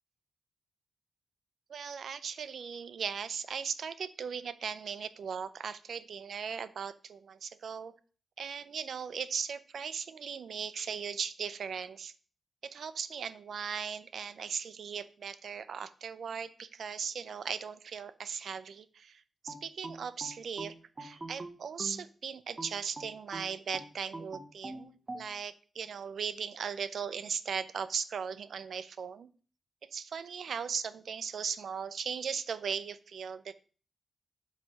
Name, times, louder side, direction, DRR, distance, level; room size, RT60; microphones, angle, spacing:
voice 1, 1.7-7.9 8.4-12.1 12.6-29.3 29.9-33.5, right 6 dB, 65° right, 14 dB, 0.5 m, -38 dB
sound 1, 19.5-22.1 22.6-25.3, right 2 dB, 30° right, 0.8 m, -44 dB
8.0 x 3.2 x 6.4 m, 0.40 s
wide cardioid pair, 120°, 0 cm